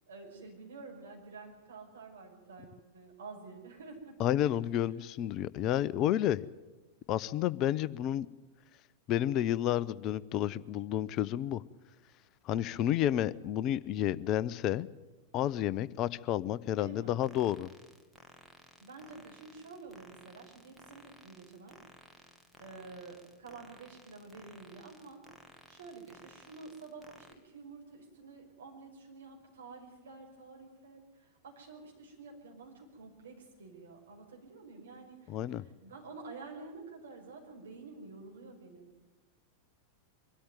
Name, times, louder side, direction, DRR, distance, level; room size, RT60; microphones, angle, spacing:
voice 1, 0.1-4.2 16.8-17.2 18.8-21.8 22.2-22.3 22.6-25.2 25.7-39.1, right 4 dB, 65° right, 0 dB, 5.4 m, -49 dB
voice 2, 4.2-6.5 7.1-8.3 9.1-11.6 12.4-14.9 15.3-17.7 35.3-35.7, left 12 dB, 35° left, 18 dB, 0.6 m, -30 dB
sound 1, 17.2-27.3, equal, ahead, 2.0 m, -58 dB
23.5 x 13.0 x 9.2 m, 1.2 s
figure-of-eight pair, 90°, 0 cm